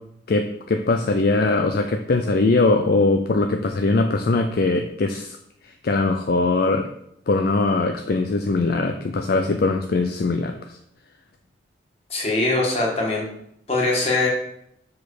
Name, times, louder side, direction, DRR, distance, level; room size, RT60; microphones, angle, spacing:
voice 1, 0.3-5.4 5.6-6.9 7.3-10.8, left 3 dB, 50° left, 5 dB, 0.4 m, -21 dB
voice 2, 12.1-13.2 13.7-14.3, left 2 dB, 35° left, -3 dB, 1.7 m, -22 dB
6.2 x 4.7 x 4.9 m, 0.75 s
head